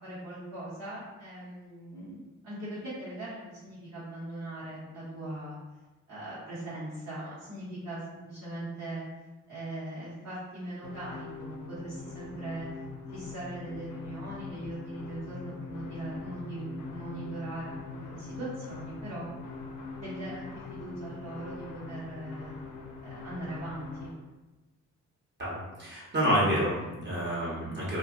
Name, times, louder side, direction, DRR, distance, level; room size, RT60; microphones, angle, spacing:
voice 1, 0.0-5.5 6.1-9.0 9.5-12.7 13.1-19.3 20.0-22.5 23.0-24.1, right 1 dB, 70° right, -12 dB, 1.0 m, -40 dB
sound 1, 10.8-24.1, left 4 dB, 90° left, 0.5 m, -42 dB
voice 2, 25.4-28.0, equal, 35° right, -7 dB, 1.2 m, -29 dB
2.6 x 2.4 x 2.5 m, 1.1 s
cardioid pair, 90°, 31 cm